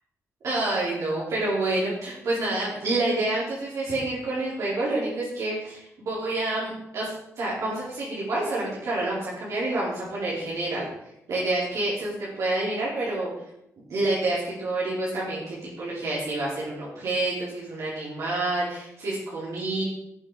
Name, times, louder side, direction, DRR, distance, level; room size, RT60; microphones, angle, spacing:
voice 1, 0.4-10.8 11.3-13.3 13.9-19.8, right 2 dB, 60° right, -6 dB, 4.2 m, -28 dB
17.5 x 6.4 x 4.9 m, 0.82 s
wide cardioid pair, 150°, 6 cm